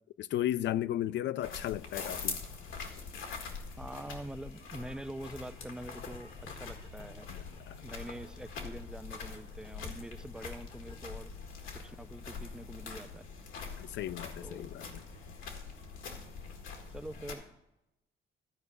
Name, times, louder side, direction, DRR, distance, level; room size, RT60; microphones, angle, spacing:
voice 1, 0.2-2.4 7.3-7.9 13.8-14.9, left 12 dB, 65° left, 0.4 m, -35 dB
sound 1, 1.4-17.3, left 5 dB, 80° left, 1.7 m, -44 dB
voice 2, 3.8-7.3 7.8-11.3 11.7-13.3 14.4-14.7 16.9-17.4, right 1 dB, 5° right, 0.3 m, -45 dB
sound 2, 5.1-11.3, left 4 dB, 25° left, 0.7 m, -57 dB
13.5 x 4.7 x 6.6 m
cardioid pair, 90°, 20 cm